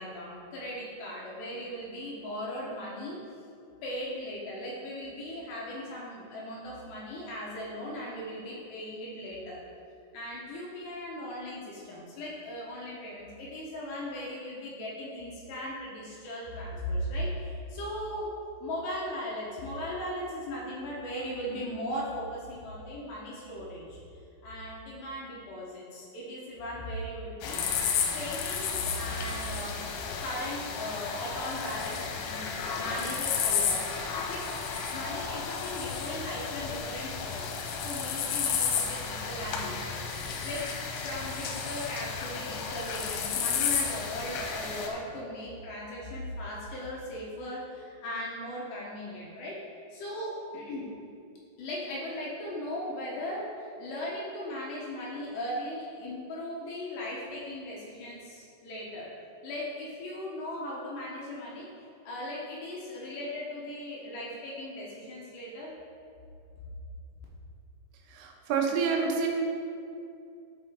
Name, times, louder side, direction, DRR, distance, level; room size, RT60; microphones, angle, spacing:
voice 1, 0.0-3.2 3.8-9.6 10.1-24.0 24.4-27.6 28.1-29.8 30.2-34.5 34.9-37.6 37.8-40.7 41.0-50.9 51.6-59.1 59.4-61.7 62.0-65.7, left 1 dB, 70° left, -5 dB, 2.9 m, -38 dB
sound 1, 27.4-44.9, left 6 dB, 90° left, 3.5 m, -32 dB
voice 2, 68.1-69.3, right 5 dB, 85° right, 1 dB, 3.6 m, -28 dB
13.0 x 5.2 x 3.7 m, 2.5 s
omnidirectional pair, 5.8 m